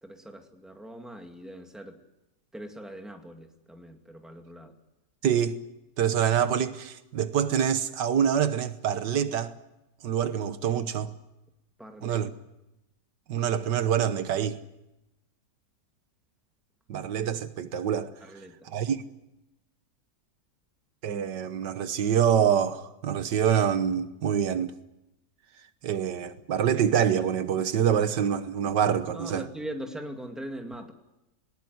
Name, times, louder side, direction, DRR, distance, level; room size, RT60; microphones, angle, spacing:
voice 1, 0.0-2.0 2.5-4.7 11.8-12.2 18.2-18.7 29.1-30.9, right 1 dB, ahead, 2.1 m, -41 dB
voice 2, 5.2-5.6 6.0-9.5 10.0-11.1 12.0-12.3 13.3-14.6 16.9-18.1 18.7-19.0 21.0-24.7 25.8-29.5, right 8 dB, 85° right, 1.7 m, -26 dB
19.5 x 18.5 x 9.5 m
omnidirectional pair, 1.8 m